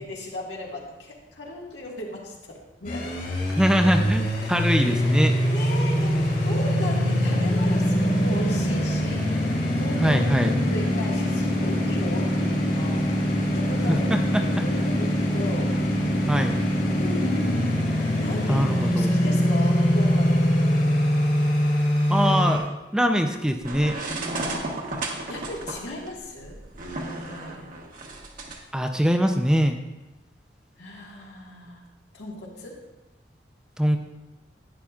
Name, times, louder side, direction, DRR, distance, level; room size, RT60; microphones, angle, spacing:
voice 1, 0.0-3.0 5.5-9.2 9.8-13.0 13.4-15.7 16.9-17.7 18.2-18.7 19.0-20.9 25.3-26.6 27.1-27.7 30.8-31.9 32.1-32.8, left 1 dB, 80° left, -2 dB, 1.8 m, -36 dB
sound 1, 2.8-22.6, equal, 55° left, 3.2 m, -23 dB
voice 2, 3.6-5.3 10.0-10.5 13.9-14.4 16.3-16.5 18.5-19.2 22.1-22.7 22.9-24.0 28.7-29.8 33.8-34.0, equal, 5° right, 5 dB, 0.5 m, -22 dB
sound 2, 23.6-28.6, right 2 dB, 50° right, 1.2 m, -33 dB
11.5 x 9.0 x 2.4 m, 1.0 s
head